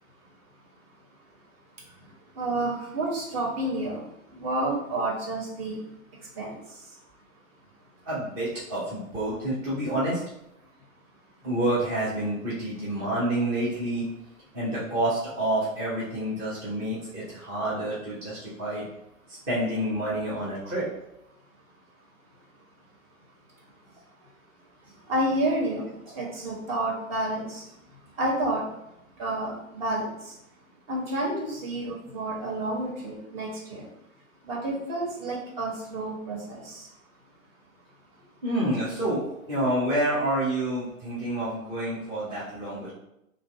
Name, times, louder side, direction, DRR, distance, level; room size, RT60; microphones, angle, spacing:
voice 1, 2.3-4.0 4.4-5.8 6.4-6.6 25.1-25.9 26.1-27.6 28.2-28.6 29.2-30.3 30.9-33.9 34.4-36.9, right 1 dB, 45° right, -3 dB, 1.5 m, -29 dB
voice 2, 8.1-10.2 11.4-14.1 14.5-18.9 19.3-20.9 38.4-39.2 39.5-42.9, right 1 dB, 10° right, -9 dB, 0.4 m, -28 dB
2.8 x 2.6 x 4.2 m, 0.83 s
figure-of-eight pair, 115°, 42 cm